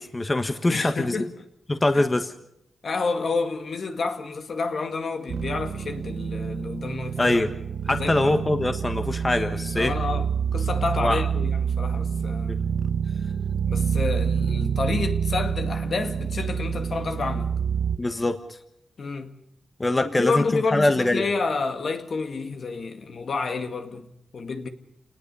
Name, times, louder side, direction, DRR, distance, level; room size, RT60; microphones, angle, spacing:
voice 1, 0.0-1.2 1.7-2.3 7.2-7.5 7.9-9.9 11.0-11.2 12.5-12.6 18.0-18.4 19.8-21.3, left 2 dB, 20° left, 1.4 m, -23 dB
voice 2, 0.7-1.3 1.9-2.0 2.8-7.4 7.9-8.3 9.7-12.6 13.7-17.6 19.0-19.4 20.0-24.1 24.3-24.7, left 4 dB, 60° left, 2.0 m, -29 dB
sound 1, 5.3-18.0, right 7 dB, 70° right, 1.0 m, -27 dB
29.0 x 19.5 x 5.6 m
cardioid pair, 95°, 0 cm